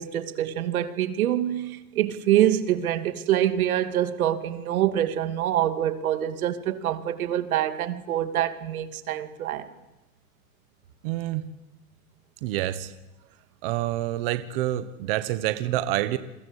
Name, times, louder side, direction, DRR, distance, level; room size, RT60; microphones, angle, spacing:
voice 1, 0.0-9.7, right 11 dB, 80° right, 2.7 m, -25 dB
voice 2, 11.0-11.5 12.4-12.9 13.6-16.2, right 14 dB, 40° right, 1.3 m, -27 dB
28.5 x 23.5 x 8.3 m
supercardioid pair, 175°, 42 cm